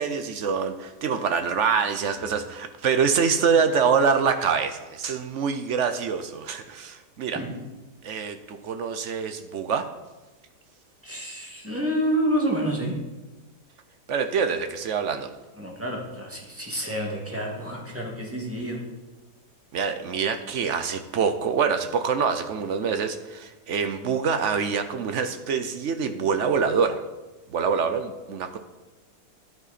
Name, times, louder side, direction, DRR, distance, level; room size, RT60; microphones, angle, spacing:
voice 1, 0.0-7.4 8.0-9.9 14.1-15.3 19.7-27.0 27.5-28.6, right 6 dB, 60° right, 9 dB, 0.8 m, -25 dB
voice 2, 11.0-12.9 15.6-18.8, right 1 dB, 10° right, -1 dB, 1.9 m, -28 dB
11.0 x 9.3 x 4.1 m, 1.1 s
omnidirectional pair, 1.8 m